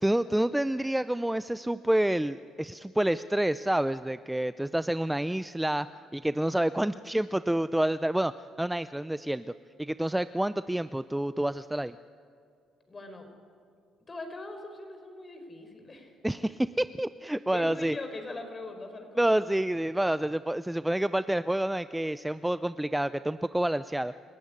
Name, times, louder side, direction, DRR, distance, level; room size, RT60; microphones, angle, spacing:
voice 1, 0.0-5.9 6.1-8.3 8.6-9.5 9.8-11.9 16.2-18.0 19.2-24.1, right 1 dB, 5° right, 14 dB, 0.5 m, -28 dB
voice 2, 12.9-13.3 14.1-16.1 17.5-19.3, left 2 dB, 30° left, 6 dB, 4.9 m, -41 dB
28.0 x 15.0 x 9.8 m, 2.3 s
supercardioid pair, 80°, 0 cm